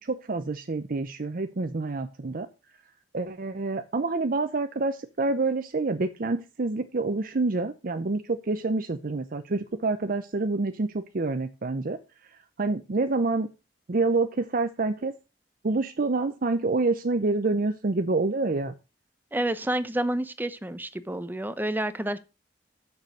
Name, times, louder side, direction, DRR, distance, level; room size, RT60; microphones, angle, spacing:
voice 1, 0.0-2.5 3.1-12.0 12.6-13.5 13.9-15.1 15.6-18.7, right 3 dB, 50° right, 0.6 m, -27 dB
voice 2, 19.3-22.2, right 1 dB, 10° right, 0.7 m, -29 dB
7.0 x 6.7 x 6.3 m
head